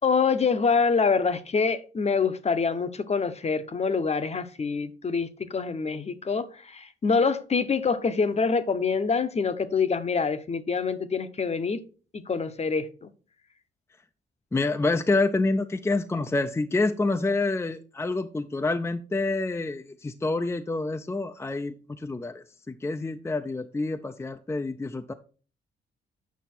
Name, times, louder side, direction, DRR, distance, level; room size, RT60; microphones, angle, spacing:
voice 1, 0.0-11.8 12.1-13.1, left 5 dB, 35° left, 0.8 m, -26 dB
voice 2, 14.5-25.1, left 3 dB, 15° left, 0.5 m, -27 dB
8.3 x 5.6 x 4.3 m
cardioid pair, 95°, 20 cm